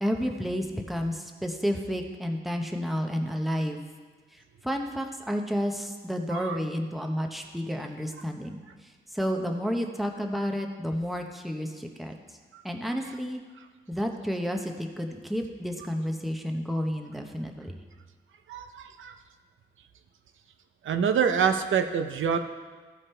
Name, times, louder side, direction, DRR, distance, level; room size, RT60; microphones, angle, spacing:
voice 1, 0.0-3.8 4.6-8.6 9.1-12.2 12.6-13.4 13.9-17.8, equal, ahead, 2 dB, 0.8 m, -31 dB
voice 2, 18.5-19.2 20.8-22.4, right 7 dB, 85° right, 7 dB, 0.6 m, -26 dB
15.0 x 5.1 x 4.4 m, 1.5 s
wide cardioid pair, 115°, 20 cm